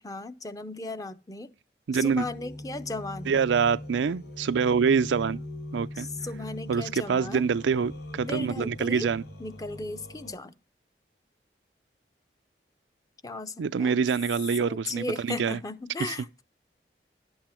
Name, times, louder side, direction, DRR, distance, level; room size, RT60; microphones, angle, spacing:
voice 1, 0.0-1.5 1.9-3.4 6.0-7.5 8.2-9.1 9.4-10.5 13.2-14.0 14.6-16.4, left 2 dB, 20° left, 0.6 m, -36 dB
voice 2, 1.9-2.3 3.3-5.4 5.7-6.1 6.7-9.2 13.6-15.6 16.0-16.1, right 6 dB, 90° right, 0.4 m, -25 dB
sound 1, 2.0-10.3, left 1 dB, 75° left, 4.4 m, -41 dB
11.0 x 8.0 x 4.3 m
head